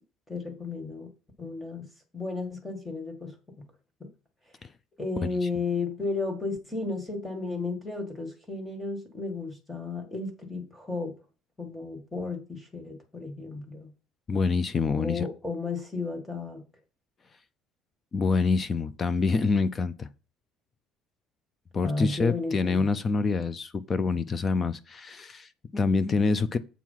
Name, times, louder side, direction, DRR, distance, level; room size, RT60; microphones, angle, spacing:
voice 1, 0.3-1.1 1.4-1.9 2.1-3.6 5.0-11.1 11.6-13.9 15.0-16.6 21.8-22.9, left 3 dB, 5° left, 2.0 m, -33 dB
voice 2, 14.3-15.3 18.1-20.1 21.7-26.6, left 4 dB, 25° left, 0.5 m, -26 dB
8.2 x 4.6 x 5.6 m
cardioid pair, 165°, 0 cm